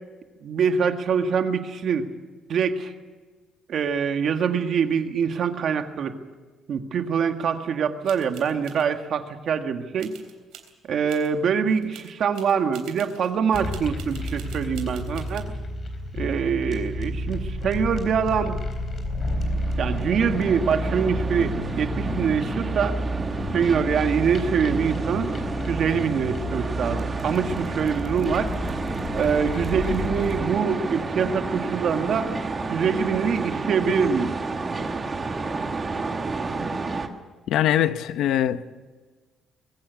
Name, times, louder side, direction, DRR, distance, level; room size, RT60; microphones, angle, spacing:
voice 1, 0.4-2.1 2.5-2.9 3.7-6.1 6.7-10.1 10.9-15.4 16.1-18.6 19.8-23.0 23.5-25.3 25.7-28.5 29.1-32.3 32.7-34.3, right 6 dB, 50° right, 1.7 m, -24 dB
sound 1, 8.0-8.8 10.0-10.7 11.1-11.3 11.7-15.4, right 10 dB, 85° right, 3.5 m, -46 dB
sound 2, 13.5-30.5, equal, 35° left, 3.9 m, -31 dB
sound 3, 19.3-37.1, right 3 dB, 25° right, 1.5 m, -31 dB
voice 2, 37.5-38.7, left 11 dB, 75° left, 0.9 m, -22 dB
22.5 x 16.0 x 8.4 m
cardioid pair, 155°, 0 cm